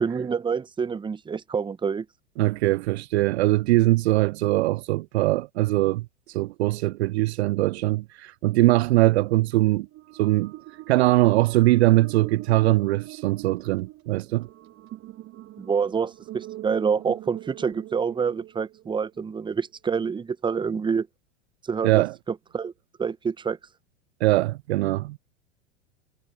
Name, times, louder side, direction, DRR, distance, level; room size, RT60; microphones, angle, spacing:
voice 1, 0.0-2.1 15.6-21.1 21.7-22.7 23.0-23.6, right 6 dB, 15° right, 0.9 m, -27 dB
voice 2, 2.4-6.0 6.3-9.9 10.2-10.5 10.9-14.5 21.8-22.1 24.2-25.2, right 18 dB, 60° right, 0.5 m, -21 dB
sound 1, 9.8-19.2, right 16 dB, 35° right, 1.3 m, -43 dB
hypercardioid pair, 90°, 37 cm